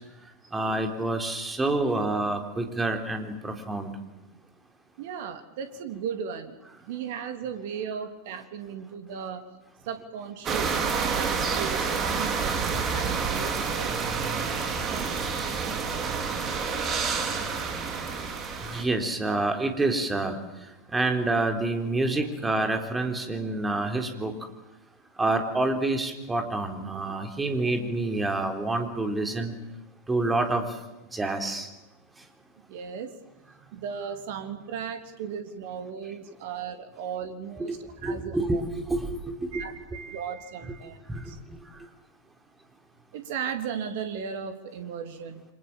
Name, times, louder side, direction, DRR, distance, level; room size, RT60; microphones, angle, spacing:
voice 1, 0.5-3.9 18.7-20.4 20.9-24.3 25.2-29.5 30.1-30.6 31.1-31.7 37.6-37.7 38.0-39.6 41.1-41.2, right 2 dB, 10° right, 5 dB, 3.8 m, -27 dB
voice 2, 5.0-9.4 9.8-14.0 32.7-33.1 33.7-38.6 39.5-41.4 43.1-45.4, right 7 dB, 50° right, 7 dB, 3.3 m, -36 dB
sound 1, 10.4-18.8, right 5 dB, 25° right, 3.8 m, -28 dB
29.0 x 26.0 x 7.5 m, 0.96 s
figure-of-eight pair, 90°, 0 cm